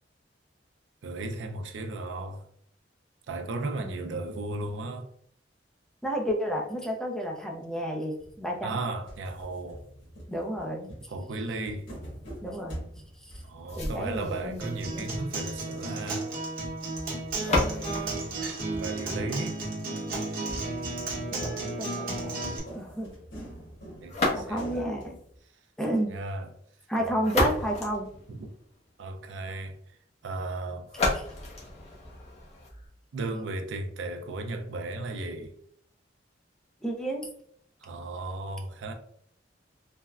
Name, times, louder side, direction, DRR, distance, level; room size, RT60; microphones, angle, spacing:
voice 1, 1.0-2.5 3.3-5.1 8.6-9.8 11.1-11.9 13.4-16.3 18.8-19.6 24.0-24.9 26.1-26.5 28.3-28.4 29.0-29.8 30.2-30.9 33.1-35.5 37.8-38.9, right 2 dB, 80° right, 0.4 m, -35 dB
voice 2, 6.0-8.8 10.3-10.9 12.4-13.3 13.8-15.1 21.3-23.1 24.3-25.2 25.8-26.1 26.9-28.1 31.1-31.2 36.8-37.3, equal, 5° left, 0.4 m, -32 dB
sound 1, 8.2-8.8 9.1-16.0 16.4-19.7 20.5-25.4, equal, 85° left, 1.2 m, -45 dB
sound 2, 13.7-19.7 24.0-24.9 26.9-28.9 30.9-32.9, left 2 dB, 35° left, 0.8 m, -32 dB
Acoustic guitar, 14.6-22.6, right 2 dB, 50° right, 0.9 m, -33 dB
3.4 x 2.1 x 2.3 m
head